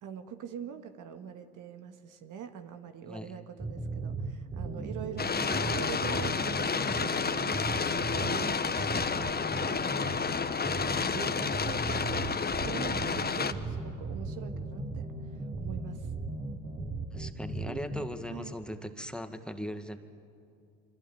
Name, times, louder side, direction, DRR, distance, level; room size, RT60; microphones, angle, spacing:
voice 1, 0.0-16.1 18.3-18.6, right 8 dB, 60° right, 7 dB, 1.8 m, -44 dB
sound 1, 3.6-18.1, right 3 dB, 30° right, 3.1 m, -37 dB
sound 2, 5.2-13.5, left 5 dB, 25° left, 1.4 m, -30 dB
voice 2, 17.1-20.0, equal, 5° left, 7 dB, 2.0 m, -39 dB
25.5 x 25.0 x 9.4 m, 2.5 s
hypercardioid pair, 65°, 35 cm